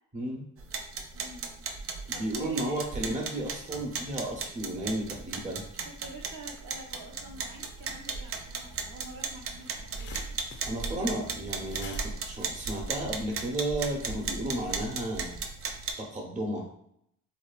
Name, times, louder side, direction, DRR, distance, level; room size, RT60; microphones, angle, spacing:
voice 1, 0.1-0.4 2.1-5.7 10.6-15.4 16.0-16.7, right 1 dB, 20° right, -1 dB, 0.8 m, -33 dB
sound 1, 0.6-15.9, right 4 dB, 40° right, 0.4 m, -37 dB
voice 2, 1.1-1.5 2.1-3.0 6.0-10.4, right 2 dB, 80° right, -2 dB, 0.8 m, -47 dB
sound 2, 9.4-13.5, left 5 dB, 35° left, 0.4 m, -49 dB
2.6 x 2.4 x 2.3 m, 0.70 s
cardioid pair, 95°, 34 cm